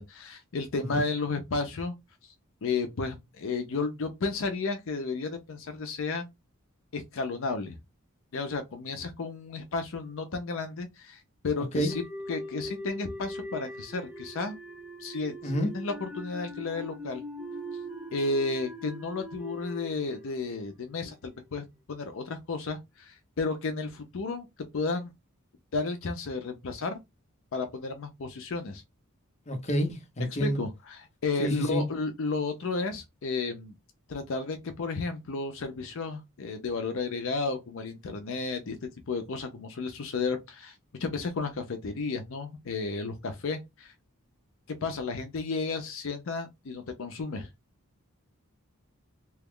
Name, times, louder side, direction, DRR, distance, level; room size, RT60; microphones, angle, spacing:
voice 1, 0.0-1.9 2.2-2.3 2.6-6.3 6.9-7.8 8.3-11.9 12.3-14.5 15.0-17.2 18.1-24.5 24.7-25.1 25.7-27.0 27.5-28.8 30.4-33.7 34.1-38.8 39.1-40.7 41.0-43.9 44.7-47.5, left 3 dB, 65° left, 0.5 m, -33 dB
sound 1, 11.9-21.1, equal, 5° right, 0.5 m, -41 dB
voice 2, 29.5-30.6 31.4-31.9, equal, 30° left, 0.8 m, -28 dB
2.9 x 2.3 x 3.6 m
head